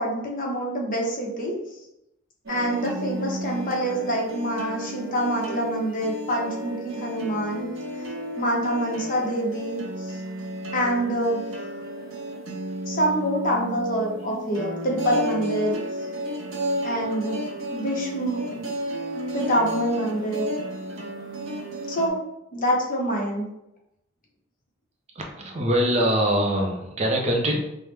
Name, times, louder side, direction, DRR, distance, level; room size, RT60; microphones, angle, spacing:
voice 1, 0.0-1.5 2.5-7.7 8.4-10.2 10.7-11.4 12.9-15.8 16.8-17.4 17.7-18.7 19.3-20.5 21.9-22.2 22.5-23.4, equal, 45° left, -2 dB, 0.9 m, -26 dB
sound 1, 2.5-22.1, right 1 dB, 90° right, 0.9 m, -33 dB
voice 2, 25.1-27.6, right 1 dB, 35° right, 1 dB, 0.5 m, -23 dB
4.8 x 2.1 x 3.2 m, 0.86 s
head